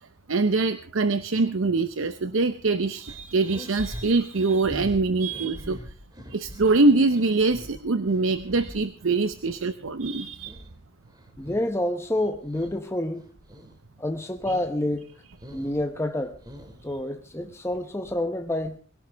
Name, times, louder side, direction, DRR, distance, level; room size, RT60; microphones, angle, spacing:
voice 1, 0.3-5.8 6.3-10.6, right 3 dB, 80° right, 0.8 m, -24 dB
sound 1, 3.1-9.7 10.0-11.8 12.1-12.8 13.1-13.8 14.1-14.8 15.1-17.0, equal, 20° right, 2.5 m, -43 dB
voice 2, 11.4-13.3 14.0-15.1 15.5-16.4 16.8-18.8, left 1 dB, 15° left, 0.9 m, -28 dB
22.0 x 17.0 x 3.4 m
head